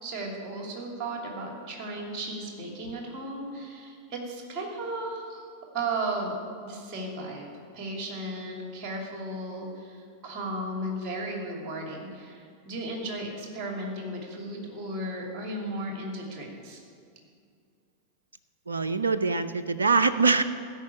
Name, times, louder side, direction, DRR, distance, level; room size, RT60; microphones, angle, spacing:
voice 1, 0.0-5.5 5.7-6.4 6.6-16.8, right 1 dB, 35° right, 1 dB, 2.6 m, -35 dB
voice 2, 18.7-20.4, right 4 dB, 75° right, 12 dB, 0.4 m, -23 dB
13.5 x 5.5 x 8.4 m, 2.3 s
figure-of-eight pair, 90°, 0 cm